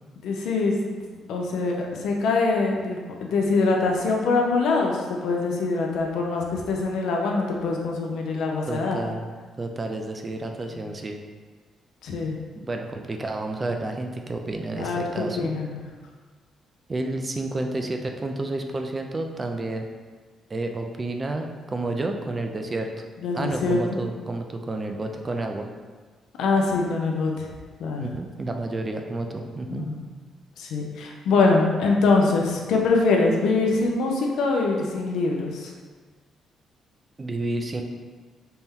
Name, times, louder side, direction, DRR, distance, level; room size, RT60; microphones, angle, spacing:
voice 1, 0.2-0.7 1.3-9.0 10.7-10.8 12.0-12.4 14.8-15.8 23.2-23.8 26.4-27.5 27.8-28.1 29.7-30.0 30.6-35.7, left 3 dB, 80° left, 0 dB, 0.6 m, -23 dB
voice 2, 8.7-9.3 9.6-11.2 12.5-15.5 16.9-19.9 20.5-22.9 23.3-25.7 28.0-29.9 37.2-37.8, right 2 dB, 25° right, 4 dB, 0.4 m, -30 dB
4.3 x 2.1 x 3.6 m, 1.5 s
cardioid pair, 105°, 0 cm